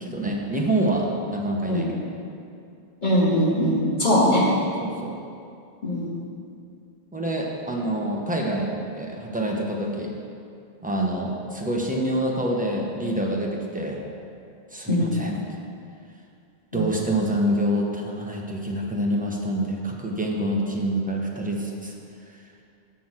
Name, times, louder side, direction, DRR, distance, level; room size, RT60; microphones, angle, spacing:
voice 1, 0.0-2.0 4.8-5.2 7.1-10.1 10.8-14.0 14.7-15.4 16.7-21.9, right 1 dB, 10° right, -1 dB, 0.9 m, -26 dB
voice 2, 3.0-4.4 5.8-6.2 14.9-15.1 16.7-16.9, equal, 45° left, -6 dB, 1.9 m, -21 dB
6.2 x 6.0 x 7.3 m, 2.5 s
omnidirectional pair, 1.1 m